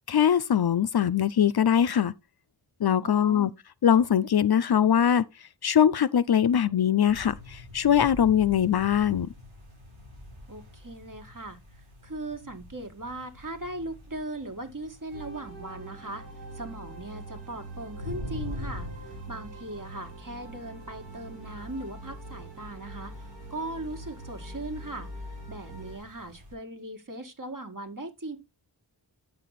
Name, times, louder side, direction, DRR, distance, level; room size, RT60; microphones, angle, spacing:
voice 1, 0.1-2.1 2.8-3.5 3.8-5.2 5.6-9.3, left 9 dB, 60° left, 0.5 m, -22 dB
voice 2, 3.0-3.5 10.5-16.2 16.5-28.4, right 2 dB, 45° right, 1.9 m, -39 dB
sound 1, 7.1-26.5, left 1 dB, 85° right, 6.8 m, -45 dB
sound 2, 15.1-26.0, right 1 dB, 70° right, 4.9 m, -43 dB
8.9 x 5.9 x 4.1 m
wide cardioid pair, 50°, 44 cm